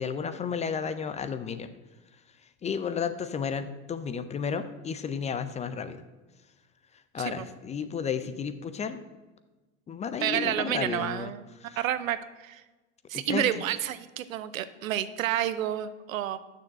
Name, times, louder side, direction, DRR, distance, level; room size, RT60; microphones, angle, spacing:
voice 1, 0.0-1.7 2.6-6.0 7.1-9.0 9.9-11.3 11.6-11.8 13.1-13.6, left 6 dB, 20° left, 11 dB, 0.4 m, -32 dB
voice 2, 10.2-11.5 11.8-12.6 13.1-16.4, right 11 dB, 90° right, 14 dB, 0.7 m, -30 dB
6.6 x 6.4 x 7.6 m, 1.2 s
hypercardioid pair, 110°, 39 cm